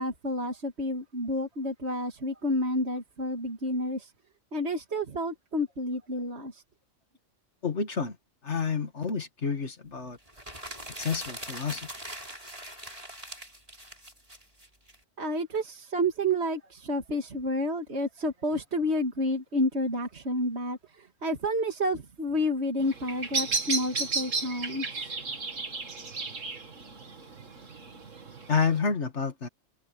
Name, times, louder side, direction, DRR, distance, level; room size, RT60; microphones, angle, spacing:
voice 1, 0.0-4.1 4.5-6.6 15.2-25.1, equal, 60° right, 2.7 m, -30 dB
voice 2, 7.6-8.2 8.4-10.2 11.0-11.9 28.5-29.5, left 5 dB, 65° left, 2.3 m, -29 dB
sound 1, 10.3-15.0, right 1 dB, 30° right, 7.0 m, -42 dB
Bird vocalization bird call bird song, 22.8-28.8, right 3 dB, 90° right, 2.8 m, -34 dB
omnidirectional pair, 1.3 m